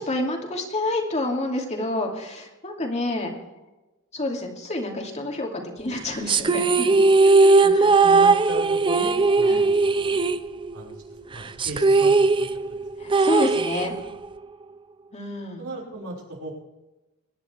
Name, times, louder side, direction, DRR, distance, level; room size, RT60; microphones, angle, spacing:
voice 1, 0.0-3.3 4.1-7.8 9.5-9.6 13.0-13.9 15.1-15.6, left 1 dB, 30° left, 1 dB, 2.6 m, -28 dB
sound 1, 6.3-10.9 11.2-11.3 11.6-14.3, right 3 dB, 25° right, 0.5 m, -19 dB
voice 2, 8.0-10.2 10.7-11.0 11.3-12.1 12.4-13.1 15.6-16.5, right 2 dB, 75° right, -3 dB, 5.3 m, -36 dB
23.5 x 10.5 x 3.4 m, 1.0 s
head